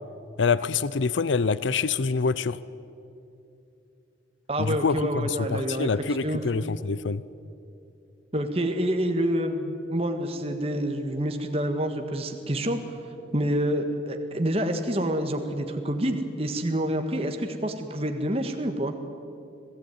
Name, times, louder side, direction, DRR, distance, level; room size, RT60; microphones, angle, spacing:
voice 1, 0.4-2.6 4.6-7.2, left 4 dB, 80° left, 17 dB, 0.6 m, -26 dB
voice 2, 4.5-5.9 6.2-6.4 8.3-12.8 13.3-18.9, right 1 dB, 30° right, 5 dB, 1.7 m, -27 dB
26.0 x 18.0 x 9.5 m, 2.7 s
head